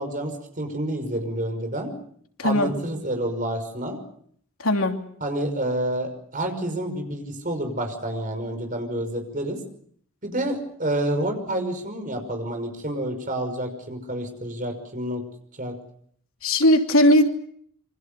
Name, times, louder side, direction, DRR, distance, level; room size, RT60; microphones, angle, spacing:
voice 1, 0.0-1.9 2.4-4.0 5.2-9.6 10.2-15.2 15.6-15.7, right 1 dB, 40° right, 7 dB, 5.7 m, -29 dB
voice 2, 2.4-2.7 4.6-5.0 16.4-17.2, left 1 dB, 80° left, 4 dB, 3.0 m, -18 dB
27.5 x 25.5 x 6.9 m, 0.65 s
head